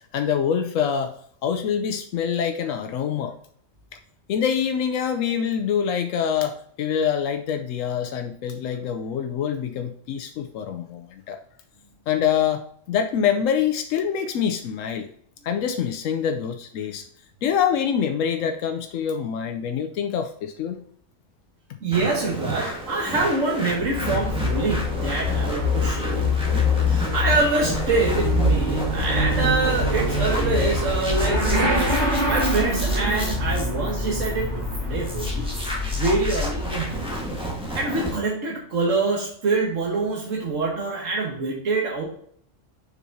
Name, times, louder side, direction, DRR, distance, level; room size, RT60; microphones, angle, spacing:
voice 1, 0.1-1.2 1.4-3.3 4.3-11.4 12.1-15.1 15.4-17.0 17.4-20.8, left 8 dB, 90° left, 6 dB, 1.0 m, -25 dB
voice 2, 21.8-26.5 26.9-35.5 35.9-37.1 37.7-42.0, right 3 dB, 85° right, -2 dB, 1.7 m, -25 dB
sound 1, 21.9-38.2, right 1 dB, 5° right, 1.4 m, -32 dB
Motorcycle / Accelerating revving vroom, 23.7-37.5, left 2 dB, 60° right, 2.8 m, -25 dB
7.2 x 5.6 x 2.7 m, 0.62 s
omnidirectional pair, 1.3 m